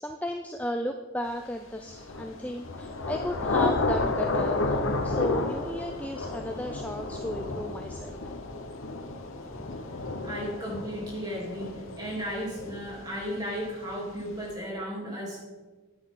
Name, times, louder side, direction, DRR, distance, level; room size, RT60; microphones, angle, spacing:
voice 1, 0.0-8.2, equal, 5° left, 5 dB, 0.3 m, -34 dB
Thunder / Rain, 1.9-13.5, left 2 dB, 85° left, 0.9 m, -31 dB
voice 2, 10.2-15.4, equal, 20° right, -4 dB, 3.0 m, -35 dB
10.0 x 9.8 x 3.7 m, 1.3 s
head